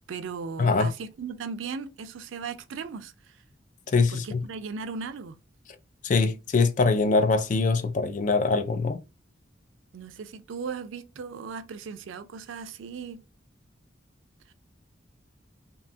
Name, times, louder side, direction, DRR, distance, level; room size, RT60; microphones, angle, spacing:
voice 1, 0.1-3.4 4.1-5.4 9.9-13.2 14.5-14.6, right 5 dB, 80° right, 0.4 m, -37 dB
voice 2, 0.6-0.9 3.9-4.4 6.0-9.0, left 4 dB, 40° left, 0.3 m, -23 dB
2.7 x 2.2 x 2.6 m
head